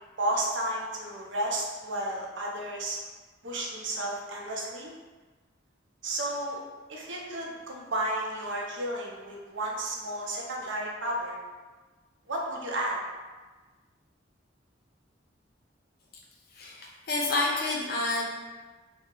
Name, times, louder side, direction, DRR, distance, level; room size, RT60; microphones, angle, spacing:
voice 1, 0.2-3.0 3.4-4.9 6.0-6.6 6.9-11.4 12.3-13.0, right 1 dB, 70° right, -2 dB, 0.6 m, -32 dB
voice 2, 16.5-18.2, left 2 dB, 50° left, -2 dB, 0.6 m, -29 dB
2.7 x 2.1 x 3.7 m, 1.3 s
head